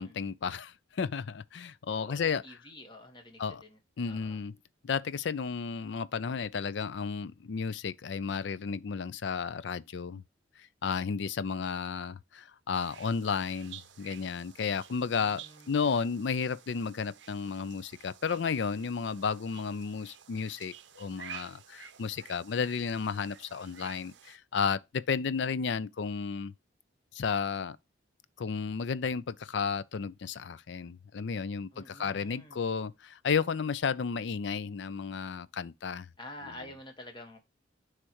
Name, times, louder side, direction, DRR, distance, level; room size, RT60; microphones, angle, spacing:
voice 1, 0.0-2.4 3.4-3.6 4.0-4.5 4.8-10.2 10.8-26.5 27.1-27.8 28.4-36.1, left 5 dB, 65° left, 0.4 m, -33 dB
voice 2, 2.0-3.8 4.0-4.4 15.1-16.0 31.7-32.6 36.2-37.4, left 1 dB, 25° left, 1.4 m, -48 dB
sound 1, 12.7-24.4, right 9 dB, 65° right, 0.6 m, -51 dB
9.8 x 3.3 x 3.0 m
head